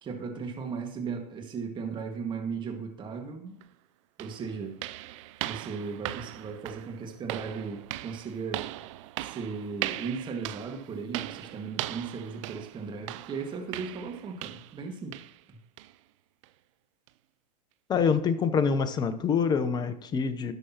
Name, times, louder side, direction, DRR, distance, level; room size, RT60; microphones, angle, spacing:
voice 1, 0.0-3.6 4.2-4.8 5.4-8.7 9.2-15.6, right 5 dB, 20° right, 1.8 m, -37 dB
sound 1, 3.6-3.7 4.2-14.8 15.1-15.4 15.8-16.0 16.4-16.5 17.1-17.2, right 16 dB, 50° right, 0.5 m, -39 dB
voice 2, 17.9-20.5, left 6 dB, 20° left, 0.9 m, -26 dB
17.5 x 6.3 x 3.0 m
hypercardioid pair, 110°, 21 cm